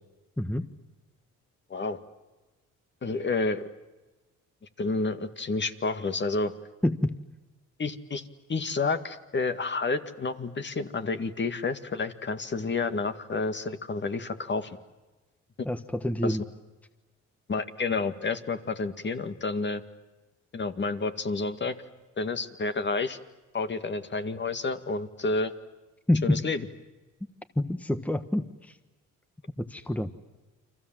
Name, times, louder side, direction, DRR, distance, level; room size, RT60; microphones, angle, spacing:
voice 1, 0.4-0.7 6.8-7.2 15.6-16.4 26.1-26.4 27.5-28.8 29.6-30.1, left 1 dB, 5° left, 10 dB, 1.3 m, -27 dB
voice 2, 3.0-3.7 4.8-6.5 7.8-8.2 8.5-14.8 16.2-16.4 17.5-19.8 20.5-21.8 22.2-23.2 23.5-25.5 26.2-26.6, left 3 dB, 35° left, 9 dB, 2.1 m, -30 dB
30.0 x 25.5 x 7.6 m, 1.1 s
cardioid pair, 90°, 30 cm